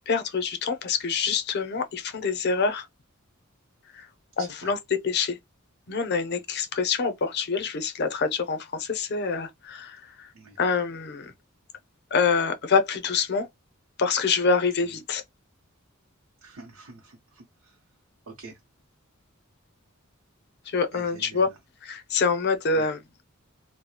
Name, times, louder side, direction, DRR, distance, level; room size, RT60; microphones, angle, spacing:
voice 1, 0.1-2.9 3.9-4.1 4.4-4.8 5.0-5.4 5.9-10.3 10.6-11.3 12.1-13.5 14.0-15.2 20.7-21.5 21.8-23.0, left 5 dB, 50° left, 0.5 m, -26 dB
voice 2, 4.4-4.7 10.3-10.6 14.8-15.0 16.4-17.8 18.3-18.6 20.9-21.6 22.7-22.9, right 3 dB, 75° right, 0.7 m, -46 dB
2.3 x 2.0 x 2.7 m
head